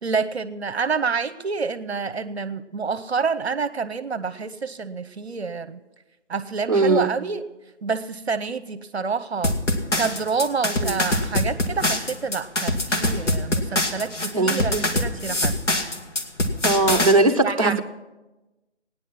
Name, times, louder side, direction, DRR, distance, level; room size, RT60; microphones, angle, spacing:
voice 1, 0.0-5.8 6.3-7.4 7.8-9.6 10.0-15.5 17.4-17.8, right 5 dB, 60° right, 13 dB, 0.8 m, -28 dB
voice 2, 6.7-7.1 10.8-11.0 14.3-14.9 16.6-17.8, right 2 dB, 30° right, 5 dB, 0.7 m, -20 dB
sound 1, 9.4-17.1, left 1 dB, 80° left, 1.9 m, -24 dB
16.5 x 9.9 x 5.8 m, 1.1 s
hypercardioid pair, 180°, 35 cm